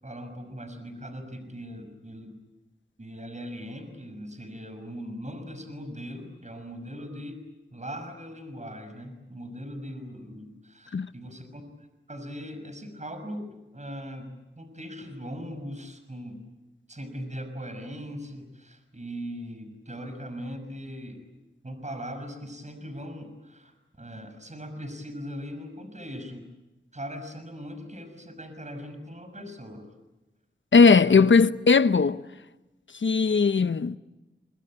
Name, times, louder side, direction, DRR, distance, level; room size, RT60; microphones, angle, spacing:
voice 1, 0.0-2.4 3.0-7.4 7.7-11.6 12.1-16.4 16.9-21.3 21.6-26.5 26.9-29.9 31.0-31.3, equal, 35° right, 6.1 m, -40 dB
voice 2, 30.7-32.2 33.0-34.0, left 5 dB, 70° left, 0.9 m, -18 dB
26.0 x 24.0 x 8.8 m
cardioid pair, 45°, 20 cm